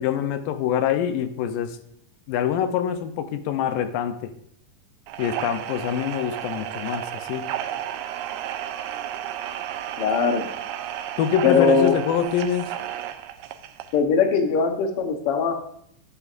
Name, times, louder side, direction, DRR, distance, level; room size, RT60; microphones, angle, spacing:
voice 1, 0.0-1.8 2.3-4.3 5.2-7.5 11.2-12.7, left 9 dB, 85° left, 9 dB, 2.3 m, -25 dB
sound 1, 5.1-14.0, right 11 dB, 80° right, 1.8 m, -33 dB
voice 2, 10.0-10.5 11.4-11.9 13.9-15.5, left 5 dB, 65° left, 5 dB, 1.5 m, -20 dB
12.0 x 9.8 x 2.5 m, 0.69 s
omnidirectional pair, 3.8 m